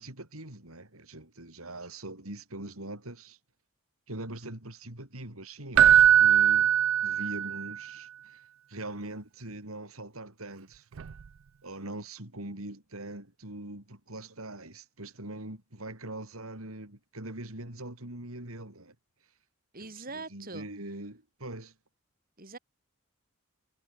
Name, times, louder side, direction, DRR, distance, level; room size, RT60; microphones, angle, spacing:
voice 1, 0.0-3.4 4.1-6.7 7.0-8.4 8.7-10.9 11.6-19.0 19.8-21.7, right 1 dB, 90° right, 5.4 m, -42 dB
Keyboard (musical), 5.8-7.7 11.0-11.1, right 10 dB, 70° right, 0.4 m, -20 dB
voice 2, 19.7-20.7 22.4-22.6, right 3 dB, 45° right, 7.4 m, -42 dB
head